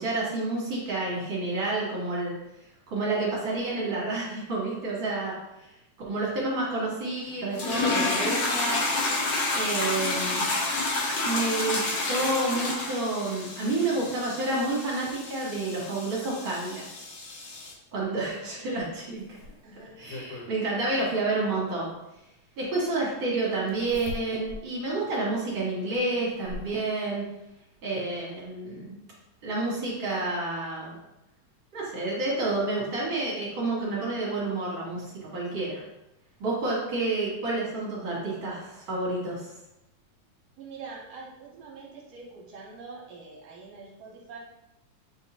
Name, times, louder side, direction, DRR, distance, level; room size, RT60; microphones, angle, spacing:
voice 1, 0.0-2.3 2.9-5.3 6.1-8.8 9.5-10.5 11.2-16.8 17.9-19.2 20.0-21.9 22.6-27.2 27.8-29.0 29.4-31.0 31.7-35.8 36.4-39.5, right 2 dB, 50° right, -6 dB, 1.8 m, -29 dB
sound 1, 7.5-17.7, left 3 dB, 85° left, 1.0 m, -30 dB
voice 2, 18.3-18.9 19.6-20.0 40.6-44.4, right 4 dB, 70° right, -3 dB, 1.8 m, -45 dB
Zipper (clothing), 18.8-20.5 22.0-22.1 23.7-24.7 25.1-25.2 25.9-26.8 28.0-28.1 28.4-28.5, left 2 dB, 70° left, 1.9 m, -41 dB
6.7 x 2.7 x 2.9 m, 0.90 s
omnidirectional pair, 3.4 m